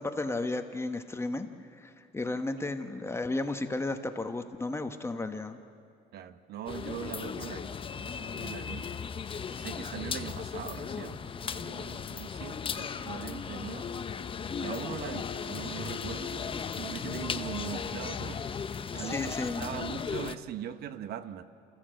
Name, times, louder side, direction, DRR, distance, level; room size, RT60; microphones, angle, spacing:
voice 1, 0.0-1.5 1.8-5.6 18.9-19.8, left 2 dB, 15° left, 7 dB, 1.2 m, -33 dB
voice 2, 6.1-8.9 9.5-14.0 14.6-19.3 19.6-21.4, right 10 dB, 70° right, 12 dB, 1.0 m, -41 dB
sound 1, 6.7-20.4, left 6 dB, 30° left, 0.8 m, -36 dB
28.5 x 15.0 x 7.7 m, 2.4 s
cardioid pair, 110°, 17 cm